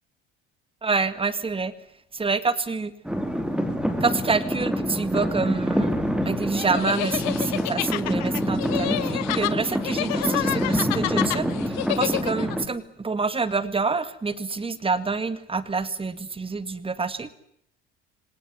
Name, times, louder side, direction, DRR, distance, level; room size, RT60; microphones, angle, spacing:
voice 1, 0.8-1.7 2.1-2.9 4.0-5.9 6.3-17.3, right 4 dB, 20° right, 14 dB, 1.9 m, -27 dB
sound 1, 3.0-12.6, equal, 5° right, 4.6 m, -26 dB
sound 2, 6.5-12.6, left 20 dB, 60° left, 1.0 m, -29 dB
26.5 x 18.5 x 9.6 m, 0.73 s
hypercardioid pair, 60°, 30 cm